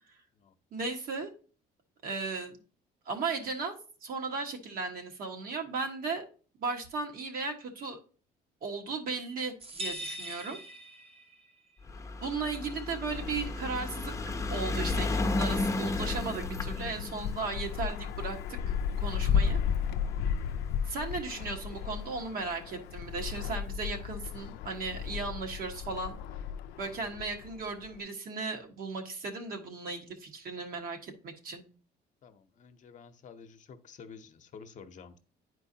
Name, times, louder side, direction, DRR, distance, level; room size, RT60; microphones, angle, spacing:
voice 1, 0.7-1.3 2.0-2.6 3.0-6.3 6.6-8.0 8.6-10.6 12.2-18.6 19.0-19.6 20.9-26.2 26.8-31.6, right 4 dB, 60° right, 3 dB, 1.4 m, -36 dB
sound 1, 9.6-11.5, equal, 35° right, 0.9 m, -41 dB
sound 2, 11.8-20.3 21.1-21.2 21.4-21.5 21.8-21.9, left 2 dB, 20° left, 0.8 m, -34 dB
Wind, 13.1-28.0, left 7 dB, 80° left, 0.4 m, -35 dB
voice 2, 32.2-35.2, left 6 dB, 50° left, 7 dB, 0.8 m, -50 dB
9.6 x 4.5 x 2.7 m, 0.38 s
cardioid pair, 110°, 17 cm